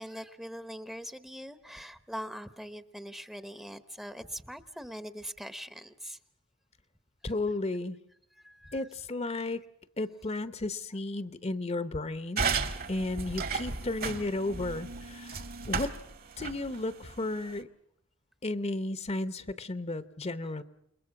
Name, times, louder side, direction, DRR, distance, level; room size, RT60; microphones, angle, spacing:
voice 1, 0.0-6.2 8.4-8.9, equal, ahead, 11 dB, 0.9 m, -42 dB
voice 2, 7.2-8.0 8.7-9.6 10.0-12.6 12.9-15.9 16.4-17.7 18.4-20.6, left 2 dB, 35° left, 13 dB, 0.9 m, -34 dB
sound 1, 12.4-17.6, right 5 dB, 50° right, 1.7 m, -35 dB
29.0 x 22.0 x 5.9 m, 0.76 s
head